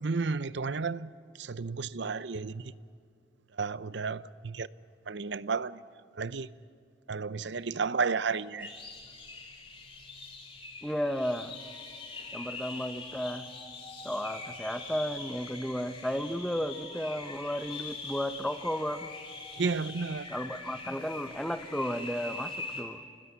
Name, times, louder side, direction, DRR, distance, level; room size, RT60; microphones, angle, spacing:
voice 1, 0.0-1.1 1.4-2.7 3.5-4.7 5.1-5.8 6.1-6.5 7.1-8.7 19.6-20.3, right 4 dB, 65° right, 0.6 m, -32 dB
sound 1, 8.6-22.8, left 3 dB, 30° left, 3.0 m, -43 dB
voice 2, 10.8-11.5 12.3-13.5 14.0-19.1 20.3-23.0, equal, 5° left, 0.8 m, -33 dB
28.5 x 19.0 x 9.7 m
head